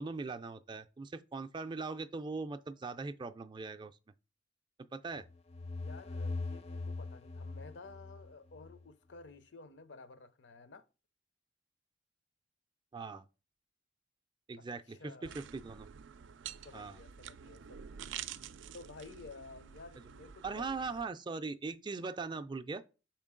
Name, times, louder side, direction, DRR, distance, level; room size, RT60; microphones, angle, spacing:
voice 1, 0.0-3.9 4.9-5.2 12.9-13.2 14.5-15.9 16.7-17.0 20.4-22.8, right 4 dB, 25° right, 0.3 m, -40 dB
sound 1, 5.2-8.8, left 3 dB, 35° left, 0.4 m, -41 dB
voice 2, 5.8-10.9 14.6-15.3 16.6-18.1 18.7-20.8, left 3 dB, 80° left, 0.6 m, -53 dB
sound 2, 15.2-21.1, right 9 dB, 90° right, 0.4 m, -48 dB
6.1 x 4.4 x 3.7 m
head